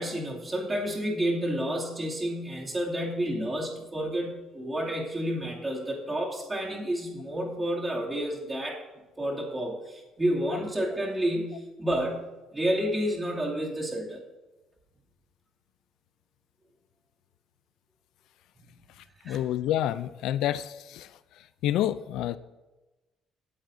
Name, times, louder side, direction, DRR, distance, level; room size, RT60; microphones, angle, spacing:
voice 1, 0.0-8.8 9.2-14.2 19.2-19.4, right 1 dB, 15° right, -3 dB, 2.5 m, -30 dB
voice 2, 19.3-21.1 21.6-22.4, left 12 dB, 80° left, 15 dB, 0.3 m, -28 dB
17.0 x 8.8 x 2.6 m, 1.1 s
cardioid pair, 120°, 0 cm